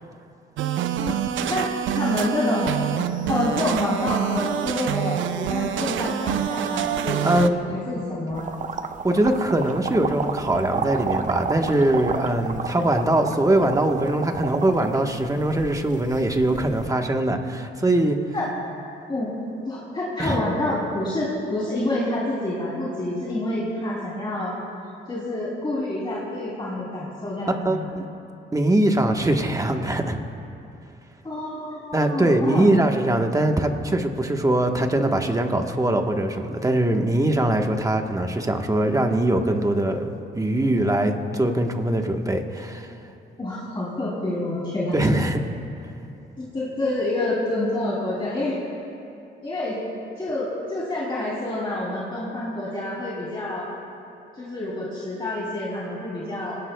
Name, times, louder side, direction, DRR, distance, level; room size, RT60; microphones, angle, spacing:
sound 1, 0.6-7.5, right 10 dB, 75° right, 0.6 m, -26 dB
voice 1, 1.4-2.8 3.3-8.5 18.3-18.5 19.1-19.3 19.6-24.5 25.1-27.9 31.2-32.7 43.4-45.0 46.4-48.6 49.4-49.8 50.2-53.7 54.4-56.6, left 1 dB, 25° left, -7 dB, 3.1 m, -27 dB
voice 2, 7.2-7.8 9.0-18.2 20.2-20.4 27.6-28.0 28.5-30.2 31.9-42.9 44.9-45.4, right 1 dB, 15° right, 4 dB, 1.2 m, -22 dB
sound 2, 8.3-16.9, right 5 dB, 40° right, 0.7 m, -31 dB
29.0 x 18.0 x 2.3 m, 2.7 s
cardioid pair, 90°, 20 cm